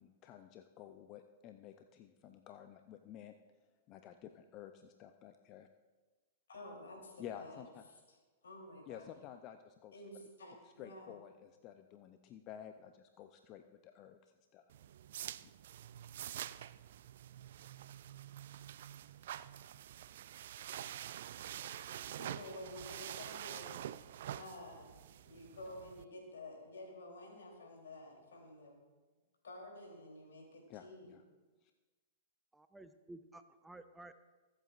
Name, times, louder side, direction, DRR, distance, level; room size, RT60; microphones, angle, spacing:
voice 1, 0.0-3.4 3.9-5.7 7.2-7.9 8.9-9.9 10.8-14.2 14.5-14.7 30.7-31.2 31.6-31.7, left 10 dB, 40° left, 7 dB, 0.5 m, -52 dB
voice 2, 6.5-7.6 8.1-8.2 8.4-9.1 9.9-11.2 22.1-23.7 24.3-24.9 25.2-28.8 29.4-31.1, left 1 dB, 80° left, 0 dB, 3.3 m, -51 dB
sound 1, 14.7-26.0, right 11 dB, 65° right, 0.4 m, -47 dB
voice 3, 32.5-34.1, right 2 dB, 5° right, 10 dB, 0.5 m, -54 dB
22.5 x 8.1 x 2.5 m, 1.3 s
hypercardioid pair, 110°, 0 cm